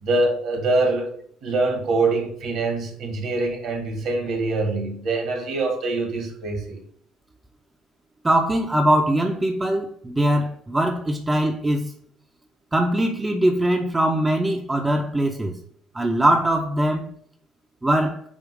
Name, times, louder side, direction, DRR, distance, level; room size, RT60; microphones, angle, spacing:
voice 1, 0.0-1.1 1.4-6.8, right 2 dB, 60° right, 2.3 m, -24 dB
voice 2, 8.2-11.9 12.7-15.6 15.9-17.2 17.8-18.2, right 1 dB, 15° right, 1.0 m, -21 dB
8.8 x 3.0 x 5.2 m
hypercardioid pair, 55°, 0 cm